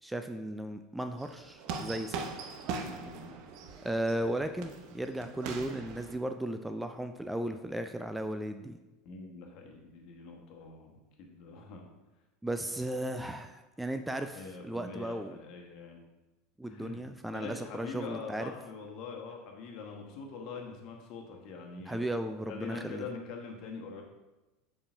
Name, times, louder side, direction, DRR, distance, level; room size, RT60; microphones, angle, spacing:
voice 1, 0.0-2.2 3.8-8.8 12.4-15.4 16.6-18.5 21.9-23.1, right 1 dB, 5° right, 7 dB, 0.4 m, -35 dB
sound 1, 1.2-6.2, right 5 dB, 50° right, 0.7 m, -41 dB
voice 2, 2.8-3.4 9.0-10.9 11.2-11.8 14.3-16.0 16.6-17.0 17.3-22.1 22.5-24.0, left 4 dB, 50° left, 1 dB, 1.3 m, -44 dB
7.0 x 6.9 x 2.6 m, 1.1 s
figure-of-eight pair, 75°, 0 cm